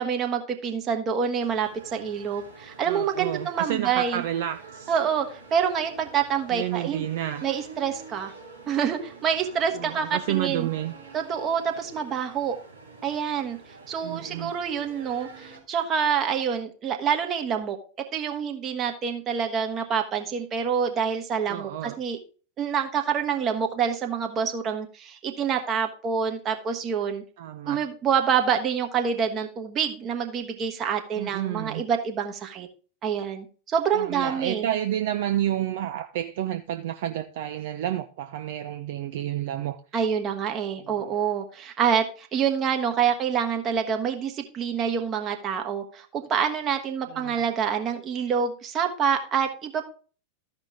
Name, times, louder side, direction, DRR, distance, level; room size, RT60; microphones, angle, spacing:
voice 1, 0.0-4.2 4.9-7.0 7.4-8.3 8.7-10.7 11.1-12.6 13.0-13.6 13.9-17.8 18.1-22.2 22.6-27.2 27.7-32.7 33.0-34.7 39.9-49.8, right 7 dB, 30° right, 1.3 m, -27 dB
sound 1, 1.4-15.6, right 4 dB, 85° right, 2.2 m, -47 dB
voice 2, 2.9-4.9 6.5-7.5 9.8-10.9 14.0-14.6 21.5-22.0 27.4-27.8 31.2-31.8 33.9-39.8 40.8-41.2 47.1-47.5, right 12 dB, 55° right, 0.4 m, -30 dB
14.0 x 5.2 x 3.6 m
figure-of-eight pair, 90°, 0 cm